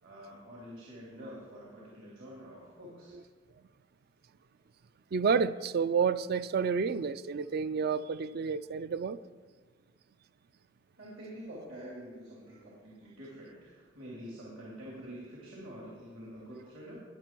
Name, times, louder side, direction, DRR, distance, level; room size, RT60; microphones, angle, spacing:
voice 1, 0.0-3.2 11.0-17.0, equal, 65° right, 3.0 m, -47 dB
voice 2, 5.1-9.2, right 5 dB, 50° right, 0.4 m, -30 dB
20.0 x 6.8 x 4.5 m
head